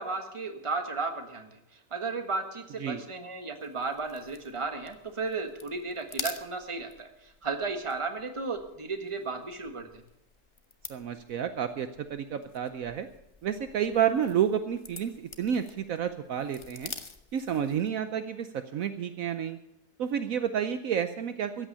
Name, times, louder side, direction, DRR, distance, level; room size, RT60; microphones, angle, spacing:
voice 1, 0.0-1.6 1.9-10.0, right 4 dB, 20° right, 6 dB, 1.3 m, -34 dB
sound 1, 3.6-18.0, left 4 dB, 25° left, 0.6 m, -47 dB
voice 2, 10.9-13.1 13.4-15.1 15.4-16.9 17.3-19.6 20.0-21.7, right 8 dB, 65° right, 10 dB, 1.1 m, -30 dB
14.0 x 8.9 x 8.6 m, 0.81 s
omnidirectional pair, 1.7 m